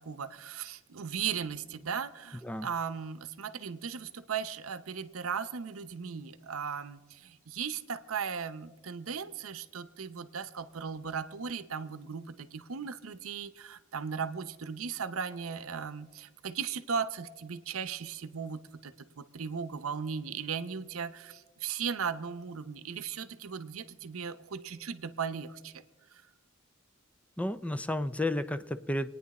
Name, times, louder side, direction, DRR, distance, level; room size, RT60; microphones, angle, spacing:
voice 1, 0.0-25.8 26.1-26.2, right 6 dB, 90° right, 14 dB, 0.7 m, -37 dB
voice 2, 27.4-29.1, left 1 dB, 5° left, 12 dB, 0.4 m, -32 dB
26.0 x 9.5 x 4.2 m, 1.3 s
head